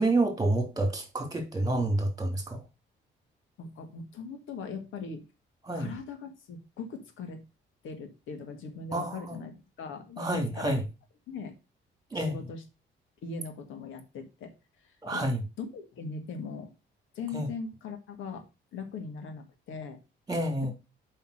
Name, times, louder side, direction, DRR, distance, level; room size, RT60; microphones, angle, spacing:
voice 1, 0.0-2.6 5.7-5.9 8.9-9.4 10.2-10.8 12.1-12.3 15.0-15.4 17.3-17.5 20.3-20.7, right 2 dB, 20° right, 2.9 m, -28 dB
voice 2, 3.6-5.2 5.8-7.4 7.8-10.7 11.3-11.5 12.1-12.6 13.2-14.5 14.8-15.3 15.6-16.7 17.1-18.5 18.7-20.0, left 4 dB, 80° left, 1.8 m, -40 dB
5.6 x 5.5 x 6.4 m
cardioid pair, 90°, 20 cm